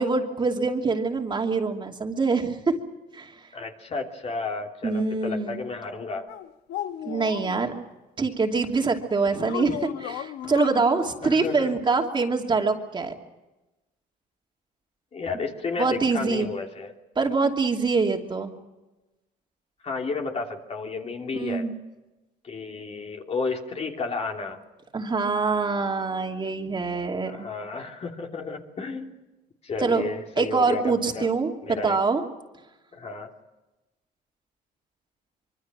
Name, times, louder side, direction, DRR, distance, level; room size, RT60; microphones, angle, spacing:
voice 1, 0.0-2.8 3.1-3.3 4.8-5.6 7.0-7.7 8.2-13.1 15.8-16.5 17.2-18.5 21.3-21.7 24.9-27.5 29.8-30.0 30.4-32.2, right 4 dB, 25° right, 2 dB, 2.8 m, -25 dB
voice 2, 3.5-6.3 11.2-11.7 15.1-16.9 19.8-21.6 22.4-24.6 27.2-29.1 29.6-31.3 31.6-32.0 32.9-33.3, left 4 dB, 40° left, 2 dB, 3.1 m, -32 dB
sound 1, 6.3-7.6 9.4-10.8, left 11 dB, 80° left, 1.2 m, -34 dB
25.0 x 24.0 x 6.2 m, 1.1 s
cardioid pair, 110°, 17 cm